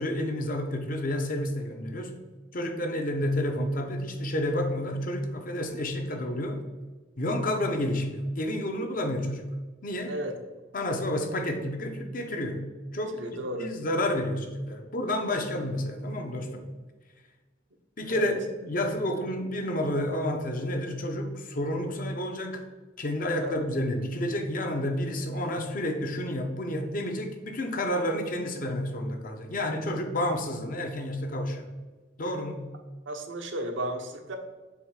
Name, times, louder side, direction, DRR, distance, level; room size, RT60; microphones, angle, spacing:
voice 1, 0.0-2.2 2.5-6.6 7.2-9.5 9.8-10.1 10.7-12.7 12.9-13.2 13.6-16.7 18.0-22.7 23.0-31.7 32.2-32.7, left 1 dB, 45° left, 5 dB, 0.7 m, -30 dB
voice 2, 10.1-10.4 13.1-13.7 18.1-18.3 23.4-23.6 33.1-34.4, right 1 dB, 75° right, 4 dB, 0.9 m, -34 dB
7.0 x 3.1 x 4.8 m, 1.3 s
head